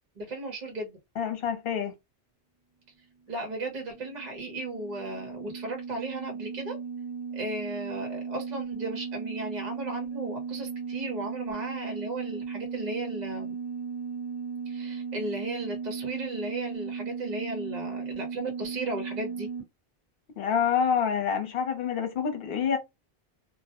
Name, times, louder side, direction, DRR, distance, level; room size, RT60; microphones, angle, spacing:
voice 1, 0.0-1.0 3.3-6.8 7.3-13.6 14.7-19.5, right 2 dB, 50° right, 0.7 m, -36 dB
voice 2, 1.2-1.9 20.4-22.8, left 7 dB, 65° left, 0.9 m, -27 dB
sound 1, 3.4-19.6, right 6 dB, 25° right, 1.2 m, -36 dB
2.1 x 2.1 x 2.8 m
omnidirectional pair, 1.1 m